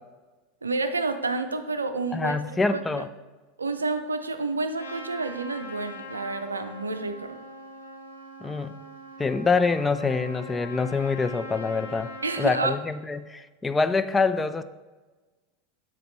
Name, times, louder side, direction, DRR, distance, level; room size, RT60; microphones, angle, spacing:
voice 1, 0.6-2.4 2.7-2.8 3.6-7.3 12.2-12.7, right 3 dB, 80° right, 9 dB, 0.4 m, -29 dB
voice 2, 2.1-3.1 8.4-8.8 9.2-12.1 12.4-14.6, left 4 dB, 15° left, 11 dB, 0.3 m, -25 dB
Trumpet, 4.7-12.6, equal, 85° left, 0.8 m, -42 dB
7.3 x 4.9 x 3.0 m, 1.3 s
figure-of-eight pair, 80°, 0 cm